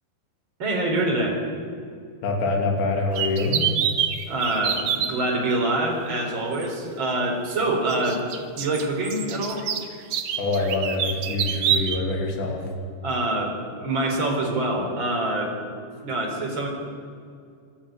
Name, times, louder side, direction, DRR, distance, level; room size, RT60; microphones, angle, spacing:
voice 1, 0.6-1.4 4.3-8.2 8.5-9.6 13.0-15.5 16.0-16.7, right 2 dB, 25° right, 0 dB, 4.4 m, -25 dB
voice 2, 2.2-3.6 10.4-12.7, left 3 dB, 70° left, 1 dB, 5.1 m, -25 dB
sound 1, 3.2-5.1 6.6-6.7 7.9-12.0, right 9 dB, 65° right, 1.9 m, -26 dB
26.5 x 13.0 x 9.1 m, 2.3 s
omnidirectional pair, 5.3 m